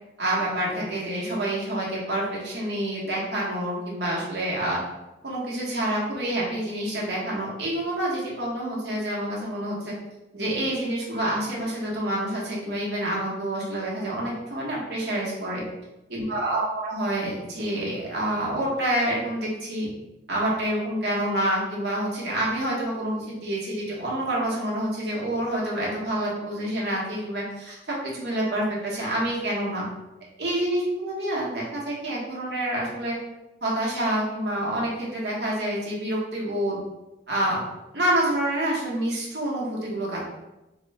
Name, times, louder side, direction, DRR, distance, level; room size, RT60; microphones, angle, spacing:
voice 1, 0.2-4.8 5.2-9.9 10.3-15.6 16.1-19.9 20.3-29.8 30.4-33.2 33.6-36.8 37.3-37.6 37.9-40.2, right 1 dB, 65° right, -4 dB, 1.0 m, -27 dB
2.9 x 2.1 x 4.0 m, 0.98 s
head